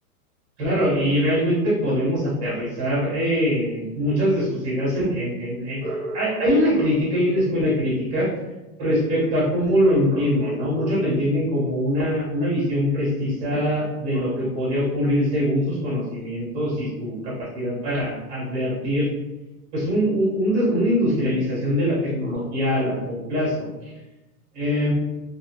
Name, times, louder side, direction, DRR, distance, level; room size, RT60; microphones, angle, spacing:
voice 1, 0.6-8.3 8.8-19.1 19.7-23.7 24.5-24.9, equal, 15° right, -8 dB, 1.1 m, -23 dB
2.9 x 2.3 x 2.8 m, 1.0 s
hypercardioid pair, 170°, 46 cm